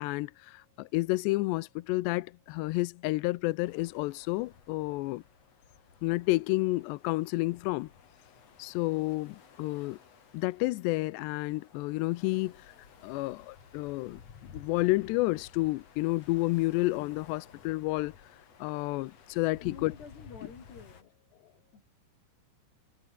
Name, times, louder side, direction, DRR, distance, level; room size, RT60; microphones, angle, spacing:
voice 1, 0.0-5.2 6.0-7.9 8.6-10.0 10.3-12.6 13.0-14.2 14.5-18.1 18.6-19.9, left 21 dB, 80° left, 2.6 m, -30 dB
sound 1, 3.6-21.0, left 7 dB, 40° left, 2.9 m, -55 dB
voice 2, 19.6-21.1 21.7-21.8, left 5 dB, 60° left, 7.9 m, -49 dB
omnidirectional pair, 5.4 m